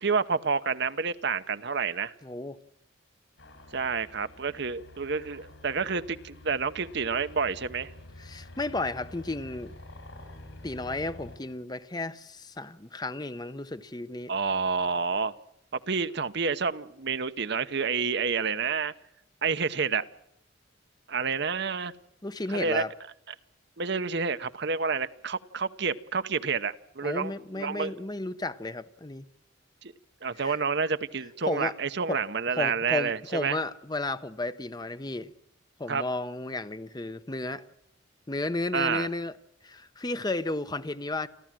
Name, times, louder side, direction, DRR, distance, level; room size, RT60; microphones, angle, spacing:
voice 1, 0.0-2.1 3.7-7.9 14.3-15.3 15.7-18.9 19.4-20.0 21.1-21.9 22.5-22.8 23.8-27.9 29.8-29.9 30.2-33.6 35.9-36.0 38.7-39.1, right 5 dB, 55° right, 0.9 m, -29 dB
voice 2, 2.2-2.6 8.2-9.7 10.6-14.3 22.2-22.9 27.0-29.2 30.4-30.6 31.4-31.8 32.1-32.2 32.5-35.3 35.8-37.6 38.3-39.3 39.6-41.3, left 2 dB, 20° left, 0.7 m, -33 dB
sound 1, 3.4-11.4, left 1 dB, 70° left, 5.2 m, -48 dB
29.0 x 13.0 x 7.5 m
head